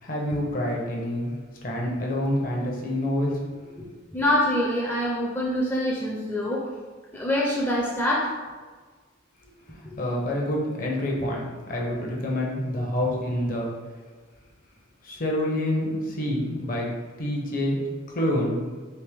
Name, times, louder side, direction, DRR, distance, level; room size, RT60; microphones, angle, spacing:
voice 1, 0.0-1.4 1.6-3.4 9.7-13.7 15.0-16.9 17.2-17.8 18.1-18.6, left 1 dB, 45° left, -1 dB, 0.7 m, -27 dB
voice 2, 4.1-6.7 7.1-8.3, left 1 dB, 10° left, -5 dB, 0.4 m, -25 dB
3.4 x 2.9 x 3.3 m, 1.4 s
head